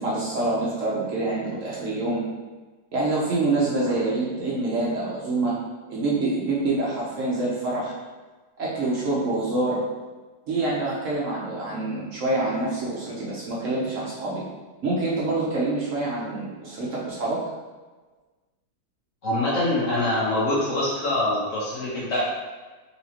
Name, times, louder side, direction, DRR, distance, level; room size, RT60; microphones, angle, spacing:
voice 1, 0.0-2.2 2.9-5.5 5.9-7.9 8.6-9.8 10.5-14.4 14.8-17.4, right 2 dB, 60° right, -6 dB, 1.0 m, -26 dB
voice 2, 19.2-22.3, left 1 dB, 60° left, -5 dB, 0.9 m, -24 dB
4.2 x 2.8 x 2.8 m, 1.3 s
omnidirectional pair, 1.8 m